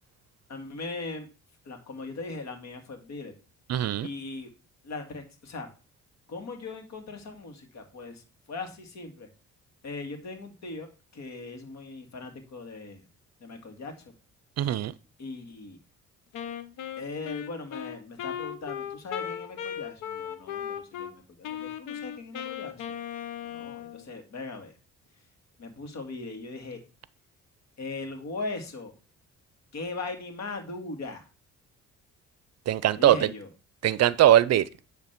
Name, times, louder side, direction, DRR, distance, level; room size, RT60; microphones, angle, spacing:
voice 1, 0.5-1.3 1.6-3.3 4.0-4.5 4.8-5.7 6.3-9.3 9.8-13.0 13.4-14.1 15.2-15.8 17.0-22.9 23.4-24.7 25.6-26.8 27.8-28.9 29.7-31.3 32.9-33.5, left 3 dB, 60° left, 2.1 m, -39 dB
voice 2, 3.7-4.1 14.6-14.9 32.7-33.3 33.8-34.6, right 12 dB, 60° right, 0.5 m, -21 dB
Wind instrument woodwind instrument, 16.3-21.1 21.4-24.1, left 9 dB, 85° left, 0.8 m, -37 dB
9.8 x 3.3 x 5.9 m
cardioid pair, 90°, 30 cm